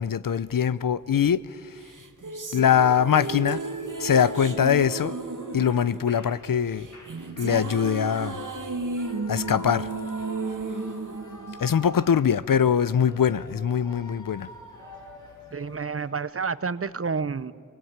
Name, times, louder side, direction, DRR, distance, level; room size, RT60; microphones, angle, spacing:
voice 1, 0.0-1.8 2.5-3.6 4.0-5.2 5.5-6.9 7.4-8.4 9.3-9.9 11.6-14.5, left 8 dB, 80° left, 0.6 m, -22 dB
sound 1, 1.8-12.3, right 3 dB, 70° right, 1.3 m, -33 dB
Shout / Cheering, 2.4-16.3, left 1 dB, 60° left, 3.9 m, -48 dB
voice 2, 15.5-17.5, right 5 dB, 45° right, 0.6 m, -29 dB
24.0 x 19.0 x 8.8 m
wide cardioid pair, 70°, 32 cm